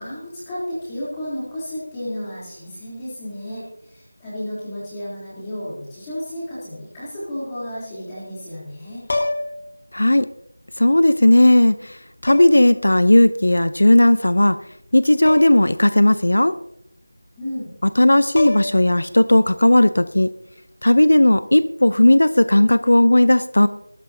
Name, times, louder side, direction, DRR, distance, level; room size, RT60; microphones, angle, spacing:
voice 1, 0.0-9.0 17.4-17.7, left 1 dB, 5° left, -10 dB, 3.6 m, -32 dB
sound 1, 9.0-9.7 11.0-11.1 12.3-12.7 15.3-15.7 16.0-16.1 17.9-18.0 18.4-18.9 20.9-21.1, left 2 dB, 30° left, 2.5 m, -27 dB
voice 2, 9.9-10.3 10.8-14.6 14.9-16.6 18.0-20.3 20.8-23.7, left 1 dB, 75° left, 14 dB, 0.7 m, -15 dB
18.5 x 13.0 x 2.9 m, 0.76 s
figure-of-eight pair, 180°, 0 cm